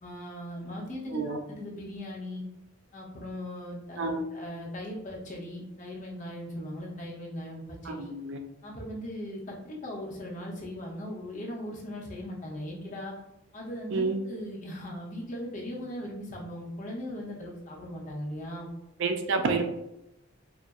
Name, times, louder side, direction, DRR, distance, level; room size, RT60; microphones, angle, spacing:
voice 1, 0.0-2.4 2.9-8.1 8.6-13.1 13.5-18.7, left 1 dB, 35° left, -4 dB, 0.8 m, -39 dB
voice 2, 4.0-4.3 7.9-8.4 13.9-14.2 19.0-19.6, right 3 dB, 60° right, 5 dB, 0.4 m, -29 dB
4.0 x 2.0 x 2.3 m, 0.87 s
head